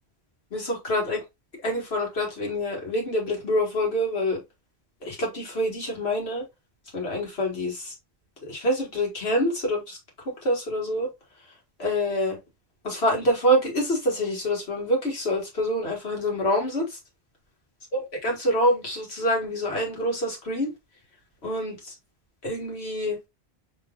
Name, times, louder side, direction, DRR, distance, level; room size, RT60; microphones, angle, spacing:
voice 1, 0.5-1.2 1.6-4.4 5.0-6.4 6.9-8.0 8.4-10.0 10.4-11.1 11.8-12.4 12.8-17.0 17.9-20.7 21.4-21.9 22.4-23.2, equal, 85° left, 1.9 m, -26 dB
5.4 x 3.2 x 2.3 m
omnidirectional pair, 1.0 m